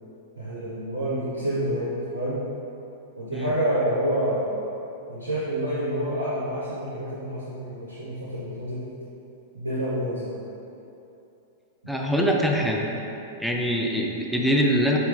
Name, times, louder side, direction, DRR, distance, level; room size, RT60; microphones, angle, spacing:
voice 1, 0.4-2.5 3.2-4.5 5.1-8.9 9.5-10.4, equal, 85° right, -9 dB, 1.1 m, -28 dB
voice 2, 11.9-12.9 13.4-15.0, equal, ahead, -1 dB, 0.7 m, -23 dB
5.7 x 4.7 x 3.5 m, 2.9 s
figure-of-eight pair, 100°, 0 cm